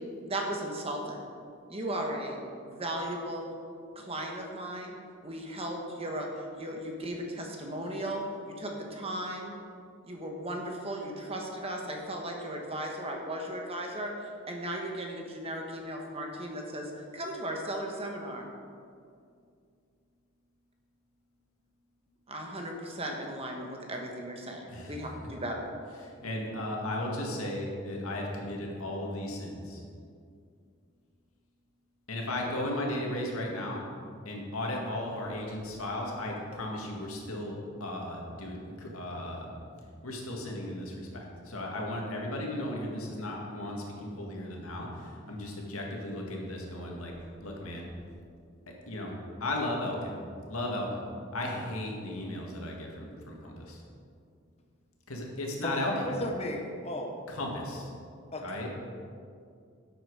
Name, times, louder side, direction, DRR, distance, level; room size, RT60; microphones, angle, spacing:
voice 1, 0.2-1.2 1.7-3.5 3.9-5.0 5.2-8.2 8.6-9.5 10.0-14.1 14.5-18.5 22.3-25.7, right 1 dB, 30° right, 1 dB, 1.3 m, -36 dB
voice 2, 26.0-29.8 32.1-33.8 34.3-39.6 40.0-47.1 47.4-47.9 48.7-49.1 49.4-50.2 50.5-51.1 51.3-53.8 55.1-56.1 57.3-57.9 58.4-58.7, left 1 dB, 90° left, -1 dB, 2.1 m, -35 dB
voice 3, 55.6-57.2 58.3-58.4, left 1 dB, 30° left, 1 dB, 1.0 m, -34 dB
11.0 x 7.8 x 4.8 m, 2.3 s
head